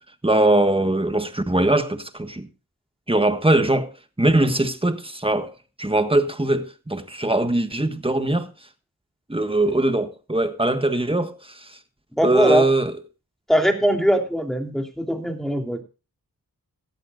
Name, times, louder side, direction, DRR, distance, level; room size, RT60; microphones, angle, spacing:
voice 1, 0.2-2.5 3.1-3.9 4.2-8.5 9.3-11.8 12.2-12.9, right 2 dB, 15° right, 1.5 m, -21 dB
voice 2, 12.2-12.6 13.5-15.8, equal, ahead, 3.3 m, -21 dB
17.0 x 11.5 x 2.5 m
cardioid pair, 45°, 37 cm